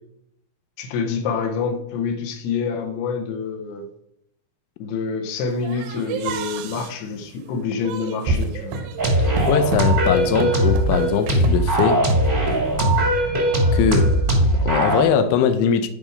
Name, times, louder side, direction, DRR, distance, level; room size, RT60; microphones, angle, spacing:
voice 1, 0.8-3.9 4.8-8.8, left 5 dB, 70° left, 3.1 m, -27 dB
sound 1, 5.6-13.0, right 3 dB, 70° right, 2.8 m, -29 dB
sound 2, 9.0-15.0, right 1 dB, 25° right, 1.1 m, -19 dB
voice 2, 9.5-12.0 13.7-15.9, left 7 dB, 90° left, 3.1 m, -21 dB
13.0 x 5.1 x 5.2 m
omnidirectional pair, 5.3 m